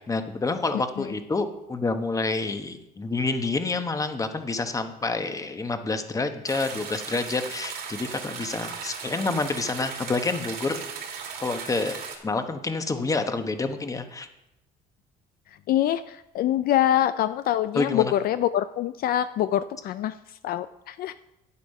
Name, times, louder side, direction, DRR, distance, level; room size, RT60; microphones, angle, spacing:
voice 1, 0.1-10.8 11.4-12.0 12.2-14.3 17.7-18.1, left 3 dB, 20° left, 8 dB, 1.0 m, -28 dB
voice 2, 0.7-1.1 15.7-21.1, left 12 dB, 60° left, 12 dB, 0.4 m, -25 dB
sound 1, 6.5-12.2, right 6 dB, 70° right, 2.4 m, -37 dB
9.5 x 8.4 x 5.4 m, 0.89 s
cardioid pair, 110°, 17 cm